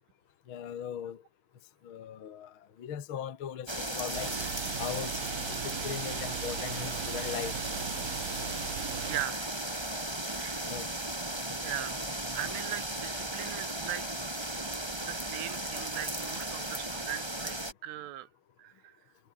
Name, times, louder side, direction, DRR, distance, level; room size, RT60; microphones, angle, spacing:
voice 1, 0.5-1.2 1.8-4.3 4.8-5.1 5.5-7.5 10.6-10.9, left 9 dB, 70° left, 1.2 m, -39 dB
sound 1, 3.7-17.7, right 1 dB, 10° right, 1.7 m, -36 dB
sound 2, 4.1-9.2, right 12 dB, 65° right, 2.5 m, -39 dB
voice 2, 9.1-9.6 10.2-10.7 11.6-12.1 12.3-14.1 14.6-14.7 15.1-18.3 18.6-19.0, right 13 dB, 85° right, 4.2 m, -40 dB
omnidirectional pair, 5.6 m